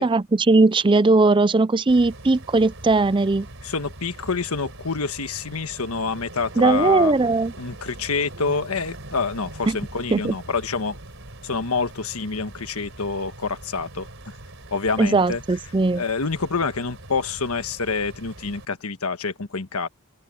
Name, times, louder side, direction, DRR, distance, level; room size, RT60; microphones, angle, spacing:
voice 1, 0.0-3.5 6.6-7.5 9.7-9.8 10.1-10.3 15.0-16.0, right 3 dB, 20° right, 0.4 m, -19 dB
sound 1, 1.9-18.7, right 1 dB, 60° right, 4.4 m, -42 dB
voice 2, 3.6-11.0 11.4-14.1 14.7-15.4 16.0-19.9, left 4 dB, 80° left, 1.4 m, -27 dB
open air
head